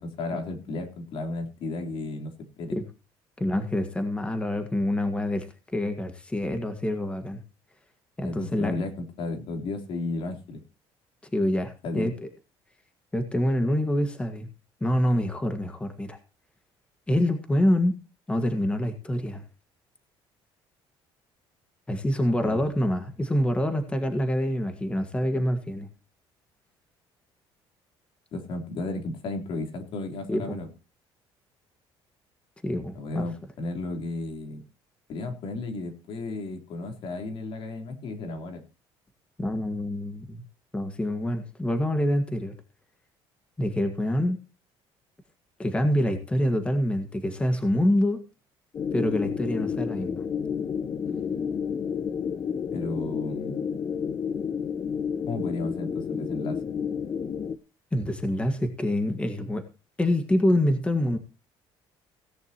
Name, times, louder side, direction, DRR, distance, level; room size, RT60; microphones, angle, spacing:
voice 1, 0.0-2.3 2.6-2.8 8.2-10.6 11.8-12.1 22.4-22.7 28.3-30.7 33.0-34.6 35.1-38.6 52.7-53.6 55.3-56.6, left 2 dB, 60° left, 5 dB, 3.5 m, -33 dB
voice 2, 3.4-5.5 5.7-7.4 8.2-8.7 11.3-12.3 13.1-14.5 14.8-16.2 17.1-18.0 18.3-19.4 21.9-25.9 30.3-30.6 32.6-33.3 39.4-40.4 40.7-42.5 43.6-44.4 45.6-48.2 48.9-50.2 57.9-59.6 60.0-61.2, left 1 dB, 10° left, 7 dB, 1.7 m, -26 dB
sound 1, 48.7-57.6, left 7 dB, 35° left, 0.9 m, -30 dB
17.0 x 10.5 x 3.0 m, 0.32 s
cardioid pair, 120°, 10 cm